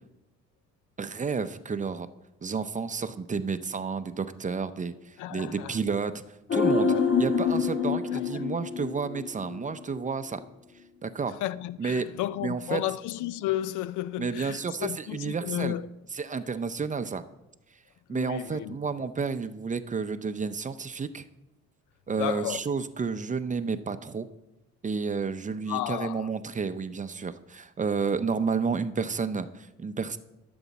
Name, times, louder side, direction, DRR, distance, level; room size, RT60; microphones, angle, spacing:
voice 1, 1.0-2.1 2.4-6.2 6.5-6.9 7.2-10.4 11.0-11.4 11.8-12.1 12.4-12.8 14.2-15.7 16.1-17.2 18.1-21.2 22.1-24.3 24.8-30.2, right 5 dB, 25° right, 0.6 m, -31 dB
voice 2, 5.2-5.8 6.9-7.1 8.1-8.4 11.4-15.9 18.1-18.8 22.2-22.6 25.7-26.3, left 14 dB, 80° left, 0.5 m, -33 dB
sound 1, 6.5-9.8 10.0-10.1, left 5 dB, 40° left, 1.1 m, -26 dB
12.0 x 7.0 x 4.1 m
cardioid pair, 90°, 30 cm